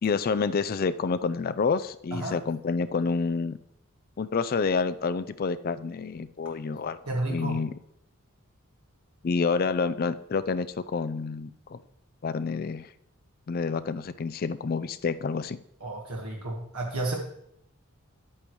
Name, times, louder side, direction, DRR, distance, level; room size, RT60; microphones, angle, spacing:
voice 1, 0.0-3.6 4.2-7.0 7.3-7.7 9.2-10.7 10.9-11.8 12.2-12.9 13.5-15.6, left 5 dB, 40° left, 13 dB, 0.4 m, -28 dB
voice 2, 7.1-7.6 15.8-17.2, right 2 dB, 80° right, -1 dB, 1.5 m, -31 dB
9.9 x 8.6 x 3.1 m, 0.75 s
head